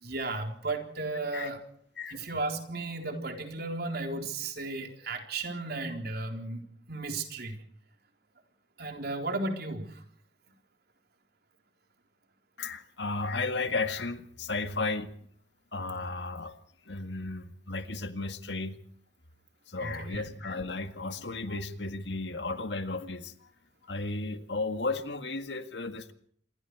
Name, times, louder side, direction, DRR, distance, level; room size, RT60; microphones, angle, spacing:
voice 1, 0.0-1.6 2.1-6.6 6.9-7.6 8.8-9.9 19.8-20.2, right 2 dB, 60° right, 4 dB, 3.9 m, -34 dB
voice 2, 12.6-15.1 15.7-16.5 16.9-18.8 19.7-23.3 23.9-26.1, left 3 dB, 75° left, 8 dB, 1.8 m, -34 dB
27.0 x 22.0 x 4.8 m, 0.63 s
head